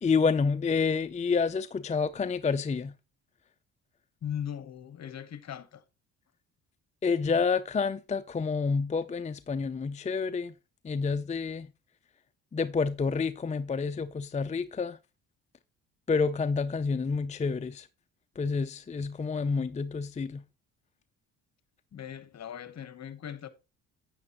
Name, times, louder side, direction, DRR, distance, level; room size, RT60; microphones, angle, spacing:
voice 1, 0.0-2.9 7.0-10.5 10.8-11.7 12.5-15.0 16.1-17.9 18.4-20.4, left 5 dB, 20° left, 0.5 m, -28 dB
voice 2, 4.2-5.8 21.9-23.5, left 9 dB, 45° left, 1.1 m, -39 dB
8.6 x 8.6 x 3.0 m
supercardioid pair, 60°, 36 cm